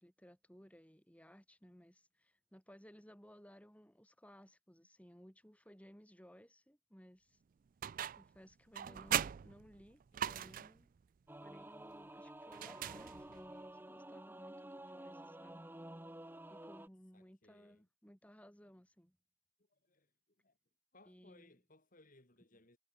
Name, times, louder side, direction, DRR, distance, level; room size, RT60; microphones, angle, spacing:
voice 1, 0.0-7.4 8.2-10.0 10.3-10.9 11.4-15.6 16.5-19.2 21.1-21.6, equal, 5° left, 7.0 m, -60 dB
sound 1, 7.8-8.4 8.7-10.8 12.5-13.5, right 10 dB, 40° right, 0.3 m, -39 dB
Singing / Musical instrument, 11.3-16.9, right 1 dB, 10° right, 1.4 m, -51 dB
voice 2, 17.1-17.9 19.7-20.6 20.9-22.8, left 2 dB, 40° left, 3.5 m, -66 dB
head